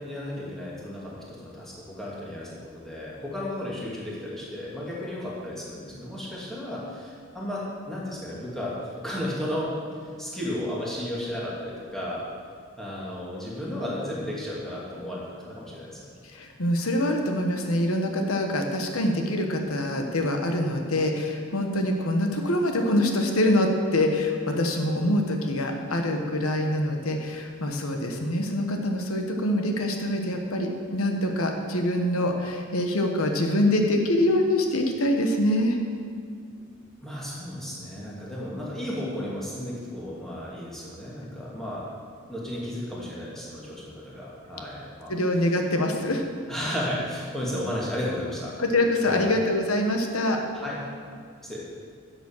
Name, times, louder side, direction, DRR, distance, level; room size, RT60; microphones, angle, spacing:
voice 1, 0.0-9.7 10.2-12.2 12.8-16.2 37.0-41.9 42.3-45.1 46.5-48.5 49.0-49.3 50.5-50.8 51.4-51.6, left 1 dB, ahead, -6 dB, 2.5 m, -34 dB
voice 2, 16.2-35.8 45.1-46.2 48.6-50.4, left 1 dB, 85° left, 3 dB, 1.3 m, -25 dB
11.0 x 7.2 x 7.3 m, 2.1 s
head